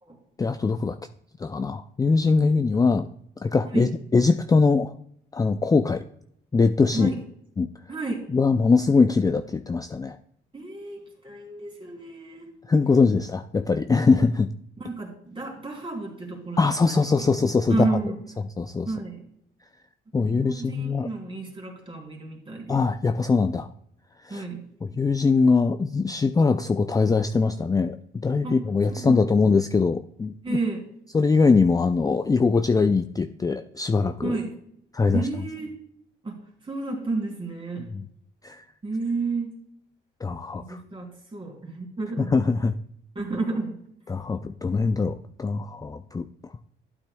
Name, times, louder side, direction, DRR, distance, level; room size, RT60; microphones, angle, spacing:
voice 1, 0.4-1.0 1.4-3.1 3.4-4.9 5.3-6.0 6.5-7.1 7.6-7.7 8.3-10.2 12.7-14.5 16.6-17.9 18.6-18.9 20.1-21.1 22.7-23.7 24.2-24.4 24.8-30.6 31.1-34.3 34.9-35.2 37.9-38.0 38.4-38.6 40.2-40.8 42.3-42.7 44.1-46.2, left 4 dB, 20° left, 9 dB, 0.4 m, -22 dB
voice 2, 7.9-8.2 10.5-12.5 14.8-17.4 17.7-18.2 18.9-19.2 20.2-22.9 24.3-24.7 28.4-28.6 29.0-29.2 30.4-30.8 34.2-34.6 35.1-35.8 36.2-37.9 38.8-39.6 40.6-42.3 43.1-43.8, right 3 dB, 25° right, 1 dB, 3.0 m, -31 dB
12.0 x 8.9 x 2.3 m, 0.70 s
cardioid pair, 90°, 20 cm